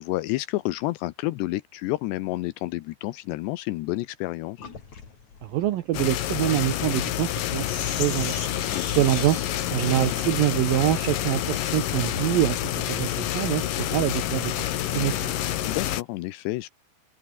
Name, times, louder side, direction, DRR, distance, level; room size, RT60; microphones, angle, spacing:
voice 1, 0.0-4.7 8.7-9.0 15.7-16.7, left 18 dB, 80° left, 2.6 m, -30 dB
Sink (filling or washing), 4.6-12.6, left 6 dB, 40° left, 4.5 m, -39 dB
voice 2, 5.4-7.7 8.0-8.5 9.0-9.4 9.7-15.3, right 14 dB, 80° right, 2.1 m, -25 dB
sound 1, 5.9-16.0, left 12 dB, 65° left, 2.4 m, -28 dB
omnidirectional pair, 5.5 m